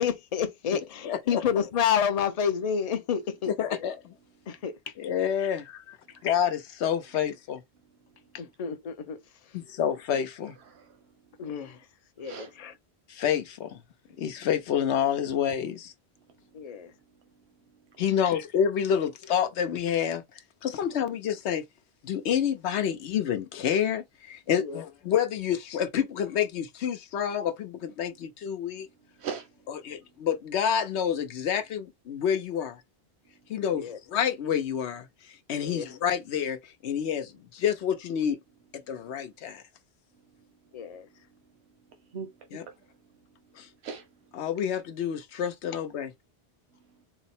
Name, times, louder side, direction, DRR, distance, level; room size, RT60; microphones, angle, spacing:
voice 1, 0.0-3.9 4.5-4.9 8.3-9.6 11.4-11.9 12.2-12.7 16.5-16.9 18.3-18.4 24.5-24.8 33.7-34.0 35.6-35.9 40.7-41.1, left 8 dB, 45° left, 0.5 m, -30 dB
voice 2, 1.0-1.4 3.5-3.9 5.0-6.0 6.2-7.6 9.5-10.5 13.1-13.8 14.2-15.9 18.0-20.2 20.6-21.6 22.0-28.9 29.7-32.8 33.5-35.1 35.5-38.4 38.7-39.6 42.5-42.6 43.6-43.7 44.3-46.1, left 8 dB, 90° left, 1.0 m, -28 dB
voice 3, 10.7-11.0 12.2-12.5 18.0-18.1 29.2-29.5 42.1-42.8 43.8-44.1, right 7 dB, 80° right, 1.0 m, -39 dB
4.1 x 2.0 x 4.1 m
omnidirectional pair, 1.1 m